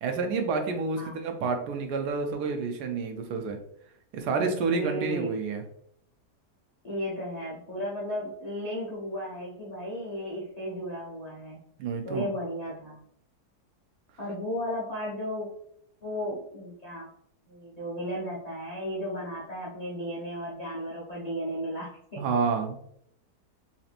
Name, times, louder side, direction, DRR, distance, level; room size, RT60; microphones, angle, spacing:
voice 1, 0.0-3.6 4.1-5.6 11.8-12.3 22.2-22.8, right 4 dB, 85° right, 5 dB, 1.2 m, -29 dB
voice 2, 4.7-5.4 6.8-11.6 12.0-13.0 14.2-15.5 16.0-17.1 17.5-22.2, equal, 30° left, -7 dB, 0.8 m, -34 dB
4.1 x 2.9 x 2.4 m, 0.70 s
omnidirectional pair, 1.7 m